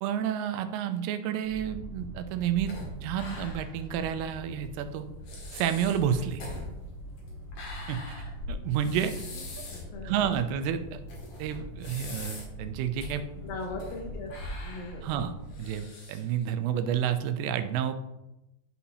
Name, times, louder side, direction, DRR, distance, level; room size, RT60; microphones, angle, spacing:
voice 1, 0.0-2.7 3.0-5.1 5.5-6.4 7.9-8.2 8.5-9.1 10.0-11.0 11.4-13.2 15.0-15.3 15.6-17.9, right 9 dB, 85° right, 9 dB, 2.6 m, -30 dB
sound 1, 1.4-15.8, right 1 dB, 65° right, 2.2 m, -43 dB
sound 2, 2.7-3.8 4.1-4.2 4.9-5.0 5.3-9.9 10.3-10.4 11.1-12.6 13.0-13.1 13.6-14.0 14.3-16.4, left 2 dB, 55° left, 2.5 m, -43 dB
voice 2, 9.3-10.3 13.4-14.3 14.6-15.3, left 3 dB, 75° left, 2 dB, 2.4 m, -40 dB
12.0 x 4.2 x 2.8 m, 0.94 s
omnidirectional pair, 4.6 m